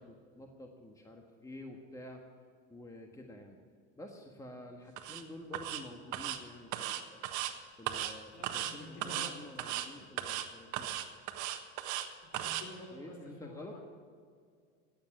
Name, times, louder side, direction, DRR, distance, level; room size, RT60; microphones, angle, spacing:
voice 1, 0.0-2.2 2.7-3.6 4.0-7.2 7.8-10.9 12.9-13.7, left 1 dB, 10° left, 2 dB, 1.6 m, -49 dB
sound 1, 5.0-5.2 5.5-5.8 6.1-6.4 6.7-7.5 7.9-8.1 8.4-8.7 9.0-9.3 9.6-9.9 10.2-10.5 10.7-12.1 12.3-12.6, right 12 dB, 60° right, 1.4 m, -36 dB
voice 2, 8.3-9.3 12.3-13.8, left 1 dB, 55° left, 1 dB, 4.6 m, -49 dB
14.5 x 9.1 x 7.5 m, 2.1 s
supercardioid pair, 95°, 34 cm